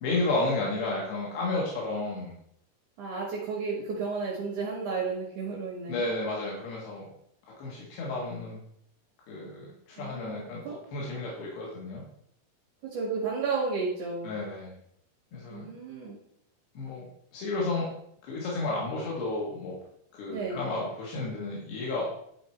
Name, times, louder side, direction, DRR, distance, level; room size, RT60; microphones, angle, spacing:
voice 1, 0.0-2.4 5.9-7.1 7.6-8.6 9.3-10.6 10.9-12.0 14.2-14.7 15.3-15.7 16.8-17.1 17.3-17.9 18.2-19.7 20.2-22.1, left 2 dB, 85° left, -4 dB, 3.6 m, -32 dB
voice 2, 3.0-6.0 10.0-10.8 12.9-14.3 15.5-16.2 20.3-20.7, right 4 dB, 60° right, -3 dB, 3.0 m, -33 dB
11.5 x 4.7 x 4.5 m, 0.71 s
omnidirectional pair, 4.4 m